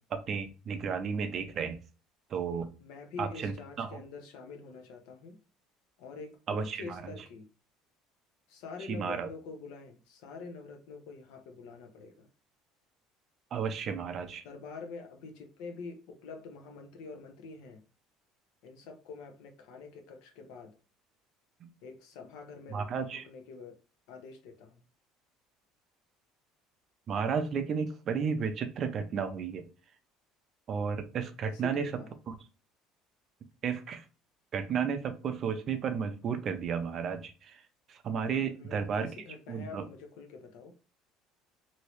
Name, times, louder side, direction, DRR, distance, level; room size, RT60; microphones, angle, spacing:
voice 1, 0.1-1.8 2.3-2.7 3.2-4.0 6.5-7.0 8.9-9.3 13.5-14.4 21.6-21.7 22.7-23.2 27.1-29.7 30.7-31.9 32.3-32.4 33.6-34.0 34.5-37.6 37.9-39.1 39.5-39.9, right 6 dB, 35° right, 8 dB, 0.4 m, -33 dB
voice 2, 2.8-5.4 6.0-7.5 8.5-12.3 14.4-17.8 18.6-20.7 21.8-22.8 23.2-23.8 24.1-24.8 31.4-32.1 38.4-40.7, left 4 dB, 75° left, 5 dB, 0.8 m, -46 dB
3.0 x 2.7 x 3.0 m, 0.34 s
cardioid pair, 160°, 0 cm